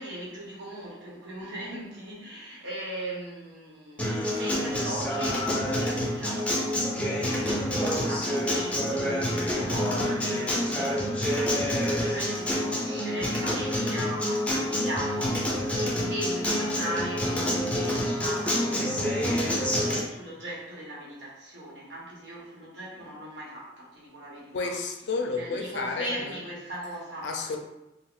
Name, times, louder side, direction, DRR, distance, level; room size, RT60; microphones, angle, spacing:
voice 1, 0.0-5.5 5.8-19.6 20.1-24.7 25.3-27.3, right 1 dB, 90° right, -5 dB, 0.9 m, -39 dB
Acoustic guitar, 4.0-20.0, left 1 dB, 10° left, 0.5 m, -27 dB
voice 2, 24.5-26.4 27.2-27.6, left 4 dB, 75° left, 4 dB, 0.4 m, -31 dB
2.4 x 2.1 x 3.6 m, 0.97 s
head